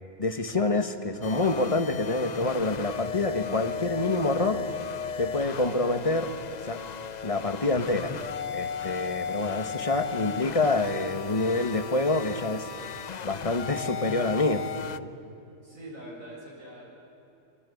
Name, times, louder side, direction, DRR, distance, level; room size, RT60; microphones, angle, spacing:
voice 1, 0.2-4.7 5.2-6.3 6.6-6.8 7.2-8.1 8.5-12.7 13.2-14.6, left 2 dB, 25° left, 8 dB, 1.5 m, -27 dB
sound 1, 1.2-15.0, left 7 dB, 45° left, 0.6 m, -36 dB
voice 2, 15.6-16.8, right 1 dB, 70° right, -3 dB, 8.1 m, -43 dB
26.0 x 25.0 x 8.6 m, 3.0 s
omnidirectional pair, 1.5 m